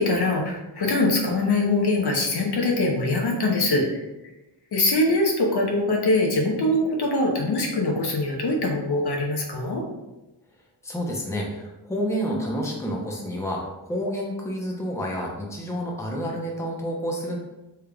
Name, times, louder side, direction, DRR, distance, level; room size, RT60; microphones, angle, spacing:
voice 1, 0.0-3.9 4.7-9.8, left 2 dB, 60° left, 0 dB, 0.8 m, -23 dB
voice 2, 10.8-17.4, equal, 5° left, -1 dB, 0.7 m, -29 dB
3.5 x 3.3 x 2.2 m, 1.0 s
cardioid pair, 75°, 43 cm